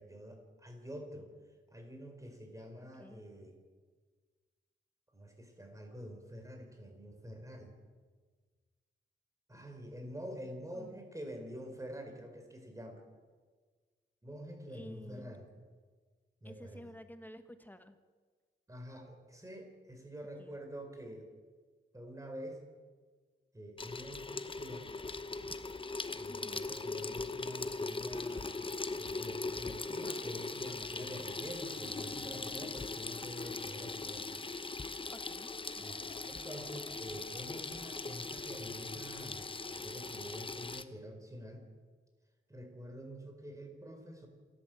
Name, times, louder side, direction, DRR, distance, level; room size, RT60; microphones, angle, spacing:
voice 1, 0.0-1.3 1.7-3.6 5.1-7.8 9.5-13.0 14.2-15.5 16.4-16.9 18.7-21.3 21.9-22.6 23.5-24.9 26.1-28.6 28.9-34.3 35.8-41.7 42.5-44.3, equal, 15° right, 4 dB, 4.5 m, -47 dB
voice 2, 14.7-15.3 16.4-18.0 20.4-20.6 26.3-26.6 35.1-35.9, equal, 10° left, 9 dB, 1.4 m, -52 dB
Water tap faucet / Sink (filling or washing), 23.8-40.8, left 3 dB, 25° left, 0.9 m, -40 dB
sound 1, 28.5-32.9 33.4-34.2, left 5 dB, 85° left, 2.8 m, -64 dB
27.5 x 12.5 x 7.8 m, 1.5 s
wide cardioid pair, 105°, 21 cm